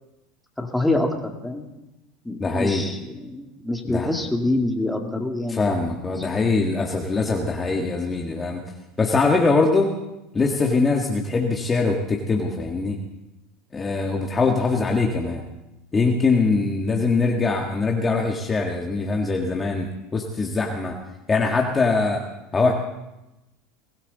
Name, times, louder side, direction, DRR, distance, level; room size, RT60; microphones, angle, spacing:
voice 1, 0.6-1.7 2.2-5.6, left 2 dB, 5° left, 2 dB, 2.3 m, -26 dB
voice 2, 2.4-2.9 3.9-4.1 5.5-8.6 9.0-9.9 10.3-13.0 13.7-15.4 15.9-21.0 21.3-22.2 22.5-22.7, left 3 dB, 20° left, 1 dB, 1.8 m, -22 dB
22.0 x 16.0 x 4.1 m, 0.96 s
supercardioid pair, 110°, 0 cm